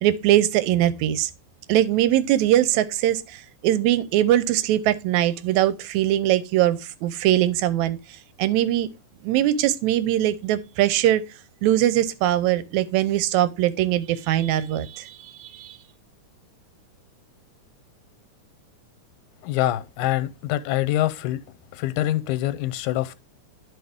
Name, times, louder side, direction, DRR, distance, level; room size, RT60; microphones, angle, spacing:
voice 1, 0.0-1.3 1.7-8.0 8.4-8.9 9.2-11.2 11.6-15.8, right 13 dB, 80° right, 1.8 m, -21 dB
voice 2, 19.4-21.4 21.7-23.1, left 14 dB, 90° left, 2.1 m, -25 dB
11.0 x 3.9 x 3.5 m
omnidirectional pair, 3.5 m